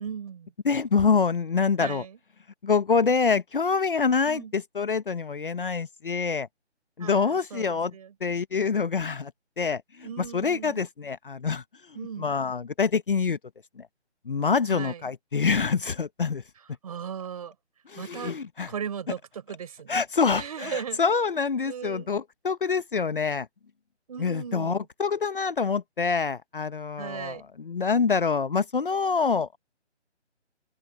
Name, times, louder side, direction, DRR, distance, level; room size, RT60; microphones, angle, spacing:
voice 1, 0.0-0.5 1.8-2.2 4.2-4.5 7.0-8.1 10.0-10.8 11.9-12.3 14.7-15.0 16.8-17.5 18.0-18.3 18.7-20.0 20.3-21.0 21.6-22.1 24.1-24.8 27.0-27.4, right 8 dB, 35° right, 4.1 m, -37 dB
voice 2, 0.6-2.0 2.6-6.5 7.0-7.9 8.2-9.3 9.6-13.4 13.8-13.9 14.2-16.4 17.9-18.7 19.9-23.5 24.2-29.6, left 5 dB, 50° left, 1.0 m, -26 dB
figure-of-eight pair, 160°, 34 cm